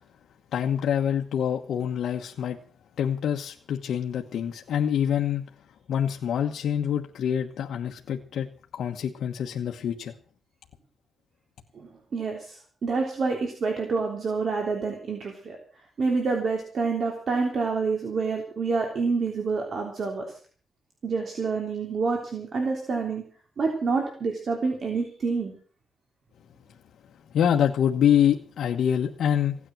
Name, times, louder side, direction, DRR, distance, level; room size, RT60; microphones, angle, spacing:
voice 1, 0.5-2.6 3.0-5.4 5.9-8.5 8.7-10.1 27.3-29.5, left 9 dB, 80° left, 1 dB, 1.2 m, -25 dB
voice 2, 11.7-15.6 16.0-20.3 21.0-23.3 23.6-25.5, right 4 dB, 50° right, 2 dB, 3.3 m, -28 dB
16.5 x 9.9 x 7.6 m, 0.43 s
cardioid pair, 125°, 0 cm